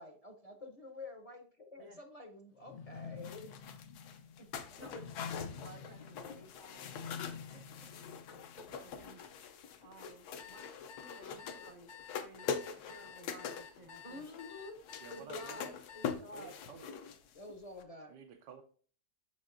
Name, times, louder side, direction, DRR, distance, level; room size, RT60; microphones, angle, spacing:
voice 1, 0.0-3.5 4.4-4.9 14.0-14.8 15.1-16.5 17.3-18.1, left 2 dB, 30° left, 0.6 m, -49 dB
sound 1, 2.6-8.7, left 6 dB, 85° left, 0.4 m, -48 dB
Cardboard Box Wrapping Paper Open Close, 3.2-17.5 17.8-17.9, left 6 dB, 70° left, 1.2 m, -44 dB
voice 2, 4.8-7.9 8.3-14.2 15.2-15.4, right 3 dB, 45° right, 0.5 m, -57 dB
sound 2, 10.4-16.1, left 7 dB, 55° left, 0.9 m, -52 dB
voice 3, 15.0-15.8 16.3-16.9 18.1-18.6, right 7 dB, 85° right, 1.4 m, -53 dB
7.2 x 6.3 x 2.6 m
omnidirectional pair, 1.8 m